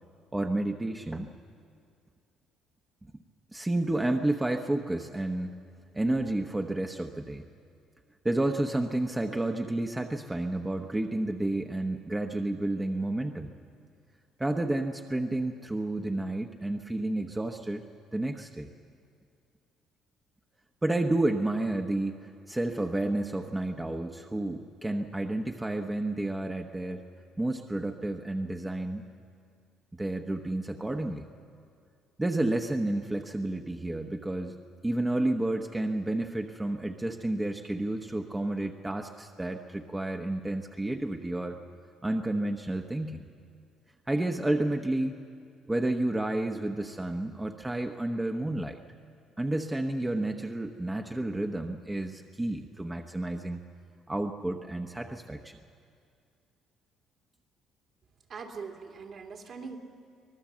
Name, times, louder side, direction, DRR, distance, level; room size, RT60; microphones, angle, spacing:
voice 1, 0.3-1.3 3.5-5.6 5.9-7.5 8.2-13.5 14.4-17.8 18.1-18.7 20.8-27.0 27.4-29.0 29.9-31.3 32.2-34.6 34.8-41.6 42.0-43.3 44.1-45.2 45.7-48.8 49.4-53.6 54.1-55.6, right 1 dB, 15° right, 4 dB, 1.0 m, -30 dB
voice 2, 58.3-59.8, right 5 dB, 55° right, 2 dB, 2.6 m, -41 dB
24.0 x 19.0 x 7.4 m, 2.3 s
cardioid pair, 90°, 0 cm